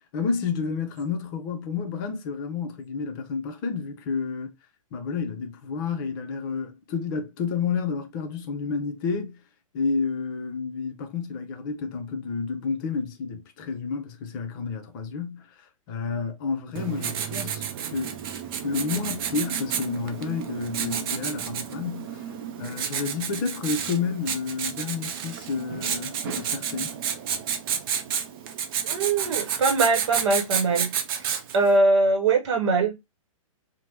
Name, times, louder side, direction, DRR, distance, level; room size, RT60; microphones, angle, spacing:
voice 1, 0.1-4.5 4.9-9.4 9.7-17.6 17.9-18.2 18.6-22.3 22.6-26.9, left 5 dB, 40° left, 0.6 m, -30 dB
Writing, 16.7-31.7, right 8 dB, 40° right, 0.5 m, -31 dB
voice 2, 28.8-30.9 31.5-32.9, right 3 dB, 55° right, 0.9 m, -22 dB
2.8 x 2.1 x 3.3 m
hypercardioid pair, 130°, 17 cm